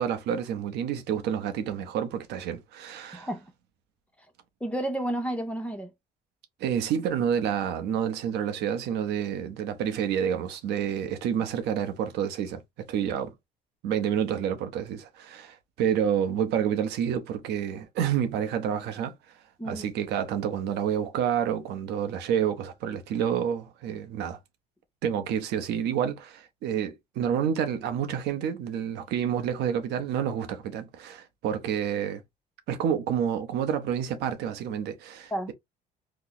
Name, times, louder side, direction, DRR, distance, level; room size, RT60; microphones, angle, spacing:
voice 1, 0.0-3.3 6.6-12.6 12.9-13.3 13.8-19.1 19.6-24.4 25.0-32.2 32.7-35.5, right 8 dB, 80° right, 0.8 m, -29 dB
voice 2, 3.1-3.5 4.6-5.9 19.6-19.9 35.3-35.5, right 1 dB, 5° left, 0.9 m, -31 dB
2.9 x 2.2 x 3.9 m
cardioid pair, 110°, 17 cm